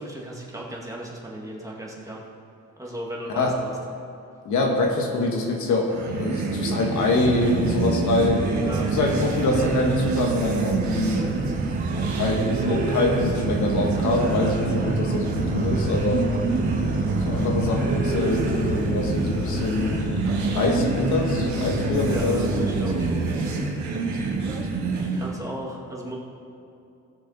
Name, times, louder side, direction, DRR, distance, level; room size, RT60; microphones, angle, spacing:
voice 1, 0.0-2.2 2.8-3.7 8.6-8.9 14.1-14.3 22.0-23.3 24.9-26.2, right 1 dB, 10° right, -3 dB, 2.2 m, -35 dB
voice 2, 4.4-5.9 6.2-8.4 8.9-11.3 12.1-16.3 17.2-19.9 20.4-22.6, left 2 dB, 75° left, 1 dB, 1.8 m, -25 dB
sound 1, 5.9-25.4, right 3 dB, 70° right, 1.8 m, -26 dB
sound 2, 7.2-18.8, right 6 dB, 30° right, 0.6 m, -33 dB
sound 3, 15.3-23.1, left 4 dB, 25° left, 1.3 m, -33 dB
18.0 x 6.6 x 4.3 m, 2.7 s
cardioid pair, 90°, 30 cm